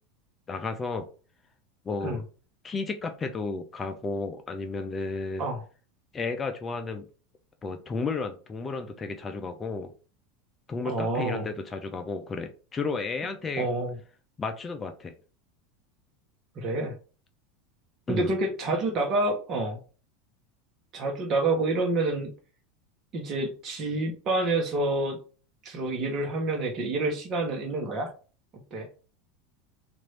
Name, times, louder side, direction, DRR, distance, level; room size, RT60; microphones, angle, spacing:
voice 1, 0.5-1.1 1.8-2.2 2.6-5.4 6.1-7.1 7.6-9.9 10.7-13.7 14.4-15.1 18.1-18.3, left 4 dB, 25° left, 6 dB, 0.6 m, -32 dB
voice 2, 10.8-11.4 13.6-14.0 16.6-16.9 18.1-19.8 20.9-22.3 23.1-25.2 25.6-28.1 28.7-28.9, right 2 dB, 40° right, 2 dB, 1.1 m, -28 dB
3.1 x 2.6 x 4.3 m, 0.37 s
hypercardioid pair, 85°, 0 cm